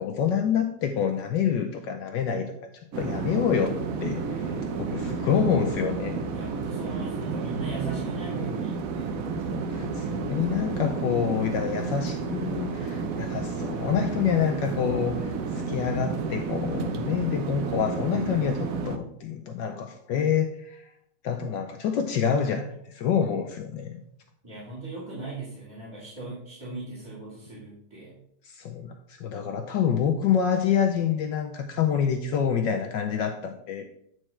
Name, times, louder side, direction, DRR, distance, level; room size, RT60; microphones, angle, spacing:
voice 1, 0.0-2.5 3.0-6.2 9.5-20.9 21.2-24.0 28.4-33.8, left 7 dB, 70° left, 5 dB, 1.2 m, -27 dB
sound 1, 2.9-19.0, right 4 dB, 65° right, 0.8 m, -31 dB
voice 2, 6.3-9.1 24.4-28.1, right 3 dB, 10° right, -7 dB, 2.5 m, -38 dB
8.9 x 4.7 x 4.3 m, 0.71 s
omnidirectional pair, 2.3 m